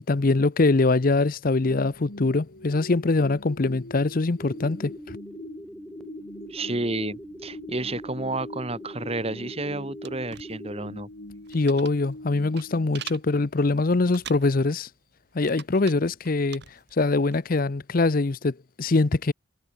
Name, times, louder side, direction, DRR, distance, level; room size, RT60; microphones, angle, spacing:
voice 1, 0.1-4.9 11.5-14.9 15.3-16.6 17.0-19.3, left 3 dB, 45° left, 0.6 m, -23 dB
sound 1, 1.6-13.7, left 1 dB, 80° left, 3.3 m, -43 dB
sound 2, 4.4-11.0, equal, 5° left, 2.0 m, -42 dB
voice 2, 6.5-11.1, right 2 dB, 30° right, 2.3 m, -31 dB
sound 3, 10.0-17.4, right 9 dB, 60° right, 4.1 m, -45 dB
head